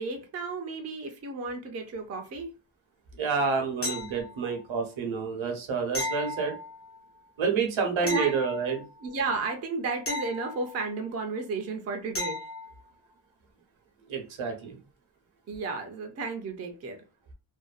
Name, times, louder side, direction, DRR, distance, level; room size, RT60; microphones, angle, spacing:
voice 1, 0.0-2.5 8.0-8.3 9.0-12.4 15.5-17.0, right 3 dB, 35° right, 4 dB, 0.4 m, -33 dB
voice 2, 3.2-6.6 7.4-8.8 14.1-14.8, right 5 dB, 70° right, 4 dB, 0.8 m, -28 dB
sound 1, 3.8-4.6 5.9-7.0 8.1-9.1 10.1-11.1 12.2-12.8 15.5-15.6, left 1 dB, 30° left, 0.6 m, -35 dB
2.5 x 2.1 x 2.3 m, 0.33 s
wide cardioid pair, 155°, 48 cm